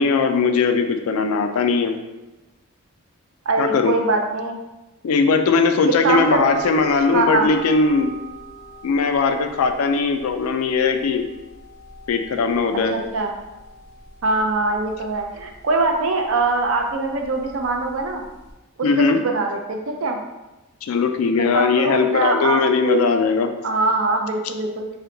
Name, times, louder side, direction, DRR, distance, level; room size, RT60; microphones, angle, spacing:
voice 1, 0.0-1.9 3.6-3.9 5.0-8.1 8.8-11.2 12.1-12.9 18.8-19.2 20.8-23.5, left 4 dB, 90° left, 6 dB, 0.4 m, -19 dB
voice 2, 3.5-4.6 6.0-6.4 7.1-7.5 12.9-13.3 14.2-18.2 19.1-20.2 21.4-23.1 23.6-24.9, right 3 dB, 70° right, 3 dB, 0.4 m, -22 dB
sound 1, 6.2-18.5, right 2 dB, 15° left, 0.6 m, -40 dB
2.7 x 2.1 x 3.8 m, 1.0 s
head